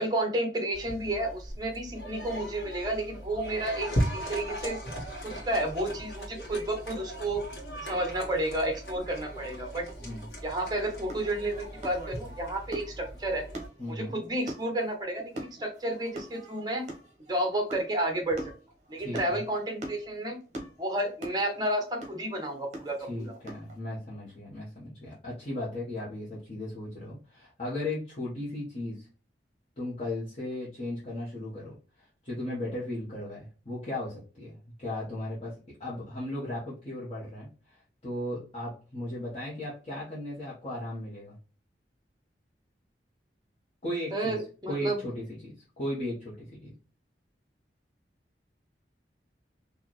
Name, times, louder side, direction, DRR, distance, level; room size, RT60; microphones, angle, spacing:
voice 1, 0.0-4.8 5.2-7.4 7.9-9.9 10.4-13.4 13.9-16.9 17.3-18.4 18.9-20.4 20.8-23.3 44.1-45.0, right 1 dB, 25° right, 3 dB, 0.9 m, -31 dB
sound 1, 0.7-13.7, equal, 65° left, 1.4 m, -38 dB
sound 2, 11.0-23.8, right 1 dB, 40° right, 1.1 m, -44 dB
voice 2, 13.8-14.1 19.0-19.4 23.0-29.1 29.8-35.5 35.8-41.3 43.8-44.3 44.6-46.7, left 1 dB, 35° left, -9 dB, 1.2 m, -36 dB
4.2 x 2.6 x 3.1 m, 0.37 s
head